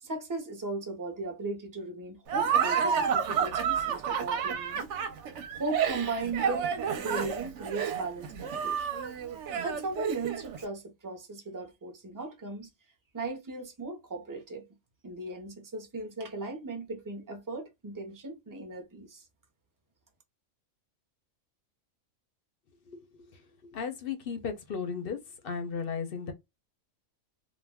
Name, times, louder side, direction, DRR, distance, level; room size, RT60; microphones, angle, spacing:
voice 1, 0.0-4.9 5.5-6.7 7.0-8.9 9.6-12.7 13.1-14.7 15.0-19.2, right 3 dB, 20° right, 0.5 m, -37 dB
Laughter, 2.3-10.6, right 7 dB, 65° right, 0.9 m, -30 dB
voice 2, 23.6-25.2 25.4-26.3, left 6 dB, 55° left, 0.7 m, -35 dB
2.4 x 2.2 x 3.4 m
omnidirectional pair, 1.4 m